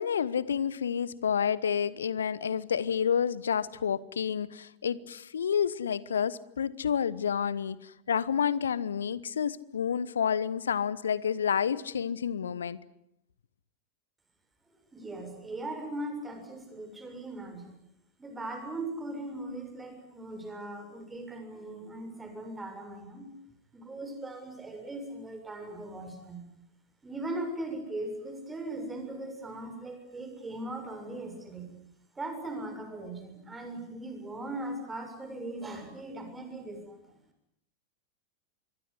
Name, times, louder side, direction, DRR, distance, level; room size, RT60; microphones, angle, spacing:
voice 1, 0.0-12.8, left 7 dB, 70° left, 1.1 m, -29 dB
voice 2, 14.9-17.8 18.2-23.3 23.7-26.4 27.0-31.7 32.2-37.1, right 2 dB, 10° right, 7.0 m, -39 dB
26.0 x 23.0 x 9.6 m
figure-of-eight pair, 90°, 0 cm